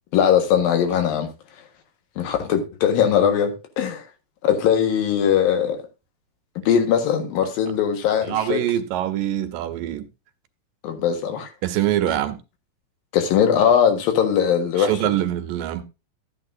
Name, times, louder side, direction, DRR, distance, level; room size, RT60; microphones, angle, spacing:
voice 1, 0.1-1.3 2.2-4.0 4.4-5.8 6.6-8.6 10.8-11.5 13.1-15.2, left 8 dB, 80° left, 3.3 m, -20 dB
voice 2, 8.2-10.1 11.6-12.4 14.8-15.8, right 12 dB, 75° right, 2.5 m, -24 dB
13.5 x 8.8 x 2.7 m
omnidirectional pair, 4.1 m